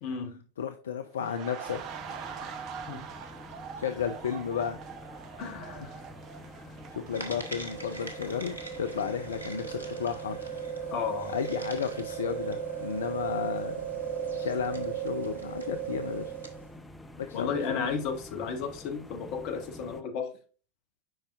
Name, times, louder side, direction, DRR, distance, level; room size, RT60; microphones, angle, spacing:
voice 1, 0.0-0.4 2.9-3.0 5.4-6.0 10.9-11.3 17.3-20.3, left 5 dB, 45° left, 1.3 m, -33 dB
voice 2, 0.6-1.8 3.8-4.8 6.9-10.4 11.3-13.8 14.3-16.3 17.2-17.8, left 7 dB, 65° left, 0.5 m, -33 dB
sound 1, 1.1-10.0 10.3-10.5, right 7 dB, 40° right, 0.7 m, -44 dB
sound 2, 1.6-20.0, left 1 dB, 10° left, 0.7 m, -48 dB
sound 3, 7.1-16.7, right 7 dB, 85° left, 1.1 m, -37 dB
7.7 x 5.4 x 2.5 m
figure-of-eight pair, 90°, 0 cm